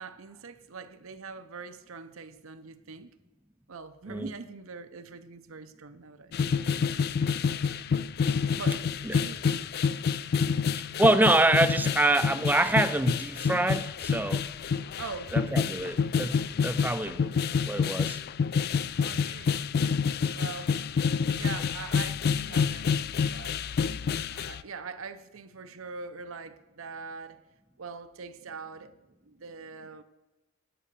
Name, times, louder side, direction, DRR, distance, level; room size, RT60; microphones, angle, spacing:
voice 1, 0.0-3.1 3.7-6.3 6.7-7.1 8.5-9.7 15.0-15.4 15.7-16.1 19.0-19.6 20.3-21.1 21.3-23.7 24.3-27.4 27.8-30.0, right 4 dB, 75° right, 0.7 m, -43 dB
sound 1, 6.3-24.6, left 6 dB, 50° left, 0.3 m, -28 dB
voice 2, 11.0-14.4 15.3-17.3 17.7-18.2, right 2 dB, 10° right, 0.5 m, -25 dB
10.0 x 7.8 x 6.7 m
head